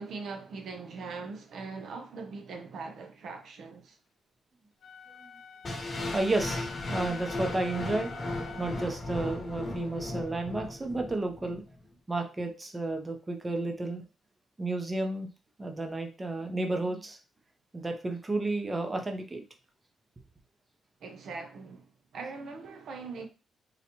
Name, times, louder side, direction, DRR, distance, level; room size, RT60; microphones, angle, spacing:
voice 1, 0.0-4.0 21.0-23.3, right 4 dB, 70° right, 0.6 m, -41 dB
Wind instrument woodwind instrument, 4.8-9.0, left 5 dB, 75° left, 0.5 m, -47 dB
sound 1, 5.6-11.6, left 2 dB, 40° left, 1.0 m, -36 dB
voice 2, 6.1-8.1 8.6-11.6 12.1-14.0 14.6-15.3 15.6-17.2 17.7-19.4, right 2 dB, 25° right, 0.6 m, -32 dB
3.9 x 2.2 x 2.9 m
cardioid pair, 90°, 0 cm